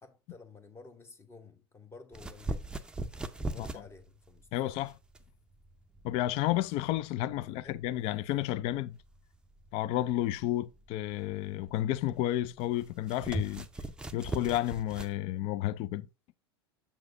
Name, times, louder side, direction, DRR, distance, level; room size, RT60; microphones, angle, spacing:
voice 1, 0.0-2.6 3.4-4.7 7.4-7.8, left 3 dB, 20° left, 1.1 m, -52 dB
sound 1, 2.1-15.2, right 1 dB, 5° right, 0.6 m, -41 dB
voice 2, 4.5-4.9 6.0-9.0 9.7-13.7 14.1-16.1, left 14 dB, 45° left, 0.4 m, -31 dB
7.2 x 6.2 x 2.6 m
hypercardioid pair, 90°, 13 cm